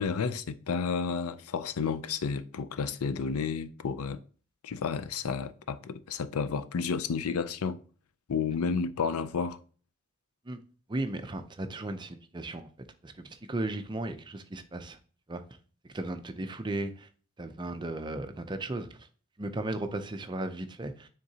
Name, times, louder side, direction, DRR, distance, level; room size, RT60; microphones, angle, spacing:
voice 1, 0.0-4.2 4.6-7.8 8.3-9.6, left 5 dB, 90° left, 0.5 m, -31 dB
voice 2, 10.9-12.7 13.0-15.0 15.3-15.4 15.8-17.1 17.4-18.9 19.4-21.1, right 2 dB, 20° right, 0.5 m, -35 dB
9.4 x 3.7 x 2.8 m
head